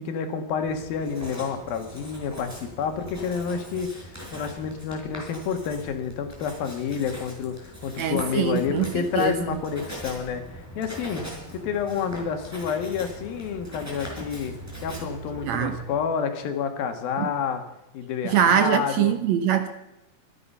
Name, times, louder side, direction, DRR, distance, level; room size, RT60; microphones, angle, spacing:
voice 1, 0.0-11.3 11.5-14.5 14.8-17.6 17.9-19.2, left 6 dB, 85° left, 6 dB, 3.5 m, -29 dB
Writing, 0.6-16.0, right 1 dB, 5° right, 4.8 m, -41 dB
voice 2, 8.0-9.4 15.4-15.8 17.2-17.3 18.3-19.7, right 8 dB, 70° right, 9 dB, 1.8 m, -23 dB
25.5 x 10.0 x 5.6 m, 0.92 s
omnidirectional pair, 4.1 m